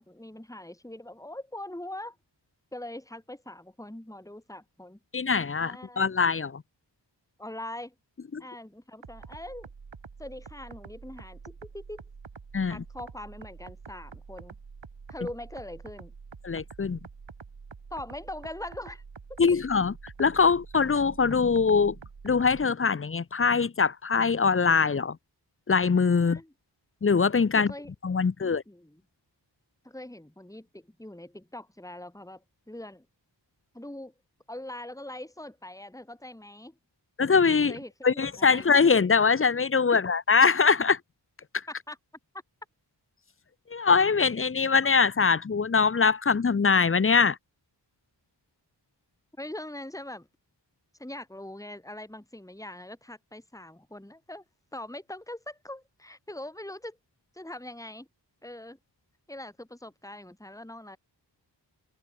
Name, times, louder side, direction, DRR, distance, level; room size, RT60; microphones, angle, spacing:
voice 1, 0.0-2.2 2.7-5.0 5.6-6.0 7.4-7.9 8.4-9.7 10.2-12.0 12.7-14.5 15.1-16.1 17.9-19.0 19.3-19.4 26.2-26.5 27.5-27.9 28.7-29.0 29.8-33.0 33.7-34.1 34.5-36.7 37.7-38.6 41.7-42.0 49.4-50.3 51.0-54.4 54.7-57.0 57.3-58.1 58.4-58.8 59.3-61.0, left 1 dB, 5° left, 2.7 m, -42 dB
voice 2, 5.1-6.6 8.3-8.4 12.5-12.8 16.4-17.0 19.4-22.0 22.2-25.2 25.7-26.4 27.0-27.7 28.0-28.6 37.2-41.0 41.5-41.7 43.7-47.4, left 5 dB, 30° left, 0.6 m, -23 dB
sound 1, 9.0-22.7, right 5 dB, 85° right, 3.5 m, -47 dB
wide cardioid pair, 60°, 44 cm